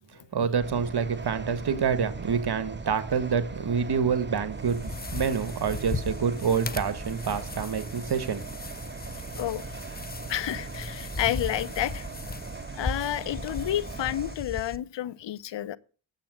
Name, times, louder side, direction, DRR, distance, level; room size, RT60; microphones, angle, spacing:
voice 1, 0.3-8.4, right 6 dB, 55° right, 1.5 m, -27 dB
sound 1, 0.6-14.4, right 3 dB, 25° right, 1.3 m, -39 dB
sound 2, 4.5-14.8, left 3 dB, 20° left, 0.7 m, -38 dB
voice 2, 10.3-12.1 12.7-15.8, left 12 dB, 65° left, 0.7 m, -30 dB
8.8 x 7.5 x 7.5 m
cardioid pair, 65°, 46 cm